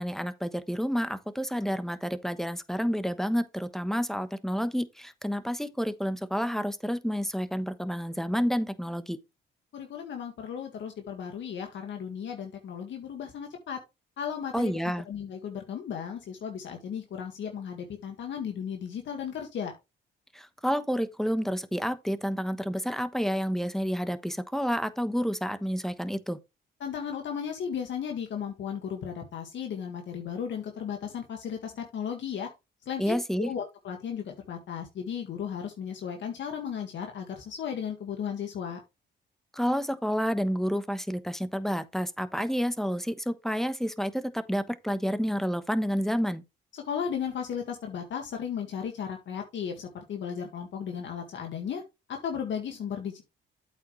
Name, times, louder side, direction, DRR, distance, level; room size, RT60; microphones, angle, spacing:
voice 1, 0.0-9.2 14.5-15.0 20.3-26.4 33.0-33.5 39.5-46.4, equal, ahead, 1.1 m, -29 dB
voice 2, 9.7-13.8 14.2-14.7 15.1-19.7 26.8-32.5 32.9-38.8 46.7-51.8 52.1-53.2, left 7 dB, 70° left, 1.9 m, -35 dB
8.4 x 7.2 x 3.2 m
cardioid pair, 90°, 20 cm